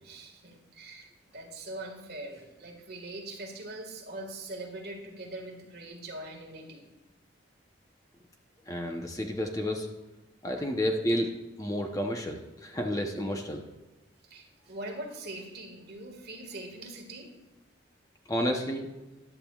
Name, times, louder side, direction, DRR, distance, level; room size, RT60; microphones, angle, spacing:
voice 1, 0.0-6.9 10.6-10.7 14.2-17.3, right 2 dB, 55° right, 2 dB, 1.8 m, -42 dB
voice 2, 8.7-9.9 10.4-11.3 11.6-13.6 18.3-18.9, equal, 15° left, 2 dB, 0.8 m, -30 dB
15.0 x 11.0 x 2.4 m, 1.1 s
head